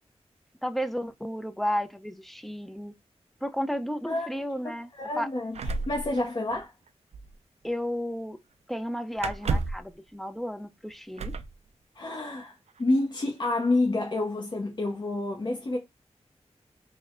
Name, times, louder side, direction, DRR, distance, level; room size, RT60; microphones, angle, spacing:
voice 1, 0.6-2.9 3.4-4.9 5.2-5.3 7.6-8.4 8.7-11.3, equal, ahead, 0.4 m, -32 dB
voice 2, 4.6-6.7 11.9-15.8, left 2 dB, 40° left, 0.7 m, -29 dB
sound 1, 5.5-6.9 7.1-7.3 9.2-9.9 11.2-11.5 12.7-12.8 13.2-13.6, right 3 dB, 75° right, 0.4 m, -31 dB
3.3 x 2.1 x 3.6 m
wide cardioid pair, 75°, 11 cm